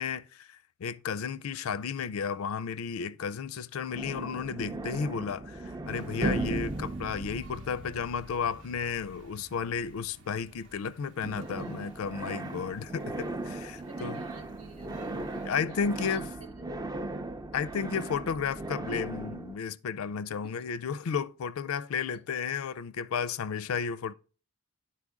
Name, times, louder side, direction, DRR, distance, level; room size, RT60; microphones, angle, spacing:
voice 1, 0.0-14.2 15.5-16.3 17.5-24.1, left 6 dB, 75° left, 0.4 m, -33 dB
sound 1, 3.9-10.9 11.2-19.6, right 2 dB, 20° right, 0.4 m, -37 dB
sound 2, 5.9-15.5, right 3 dB, 60° right, 0.9 m, -58 dB
voice 2, 13.8-14.9 15.2-16.5 20.4-20.6, right 2 dB, 80° right, 1.4 m, -51 dB
9.7 x 4.3 x 3.6 m
head